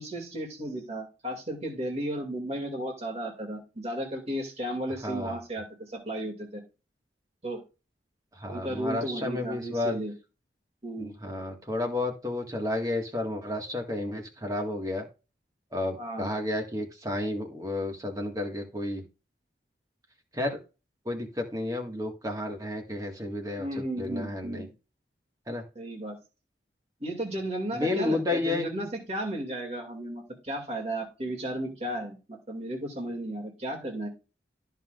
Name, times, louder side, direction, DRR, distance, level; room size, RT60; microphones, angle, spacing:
voice 1, 0.0-6.6 7.4-7.6 8.5-10.1 10.8-11.1 16.0-16.3 23.6-24.7 25.7-26.2 27.0-34.1, right 1 dB, 35° right, 2 dB, 2.6 m, -34 dB
voice 2, 5.0-5.4 8.3-10.0 11.0-15.1 15.7-19.0 20.3-20.6 21.1-24.7 25.5-25.6 27.7-28.9, left 2 dB, 20° right, 2 dB, 1.9 m, -31 dB
13.5 x 5.8 x 2.5 m, 0.31 s
head